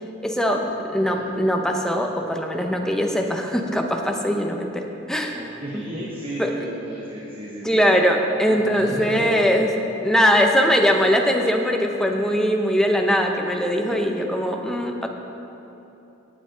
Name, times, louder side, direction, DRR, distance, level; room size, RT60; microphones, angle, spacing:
voice 1, 0.2-5.4 5.7-5.8 6.4-6.5 7.6-9.7 10.0-15.1, equal, 5° left, 2 dB, 0.7 m, -21 dB
voice 2, 5.3-7.8 8.5-9.5, right 1 dB, 25° right, -4 dB, 1.0 m, -33 dB
18.0 x 7.6 x 3.9 m, 3.0 s
head